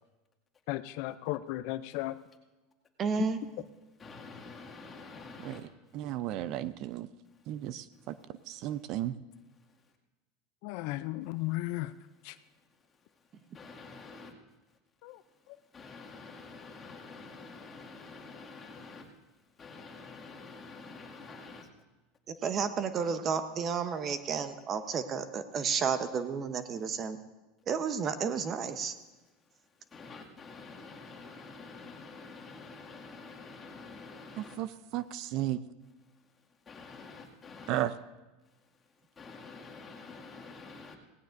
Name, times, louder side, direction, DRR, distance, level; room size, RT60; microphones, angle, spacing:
voice 1, 0.7-2.2 10.6-11.9 12.2-12.3 15.0-15.2, left 17 dB, 65° left, 13 dB, 0.5 m, -35 dB
voice 2, 3.0-3.4 22.4-27.2 27.7-28.9, right 6 dB, 35° right, 10 dB, 0.9 m, -31 dB
voice 3, 4.0-5.6 13.5-14.3 15.7-19.0 19.6-21.7 29.9-34.6 36.7-37.8 39.2-41.0, left 4 dB, 25° left, -1 dB, 2.1 m, -47 dB
voice 4, 5.9-7.1 7.5-7.8 8.5-9.1 34.4-35.6 37.7-37.9, right 13 dB, 55° right, 15 dB, 0.5 m, -34 dB
18.0 x 16.0 x 2.6 m, 1.1 s
supercardioid pair, 115°, 0 cm